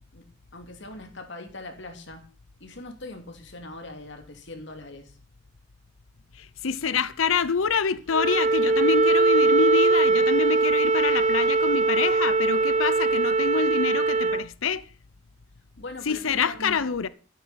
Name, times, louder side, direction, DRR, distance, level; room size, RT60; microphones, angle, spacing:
voice 1, 0.5-2.2 2.6-5.1 15.8-17.0, left 2 dB, 60° left, 2.6 m, -41 dB
voice 2, 6.3-14.9 16.0-17.1, left 6 dB, 80° left, 0.7 m, -26 dB
Wind instrument woodwind instrument, 8.1-14.4, right 3 dB, 35° right, 0.8 m, -21 dB
12.5 x 9.5 x 5.8 m
head